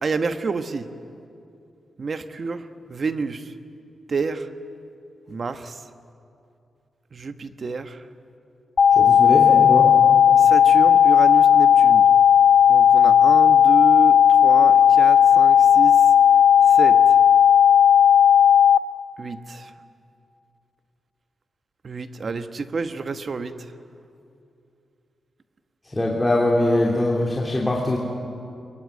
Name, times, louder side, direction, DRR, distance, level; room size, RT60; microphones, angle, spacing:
voice 1, 0.0-0.9 2.0-3.5 4.1-4.5 5.3-5.8 7.1-8.0 10.4-12.1 12.7-14.2 14.4-16.0 16.7-17.0 19.2-19.7 21.8-23.6, right 4 dB, 50° right, 9 dB, 1.2 m, -29 dB
sound 1, 8.8-18.8, left 9 dB, 60° left, 1.1 m, -14 dB
voice 2, 8.9-9.9 25.9-28.0, left 1 dB, 15° left, -2 dB, 3.1 m, -22 dB
22.5 x 22.0 x 9.4 m, 2.6 s
cardioid pair, 65°, 0 cm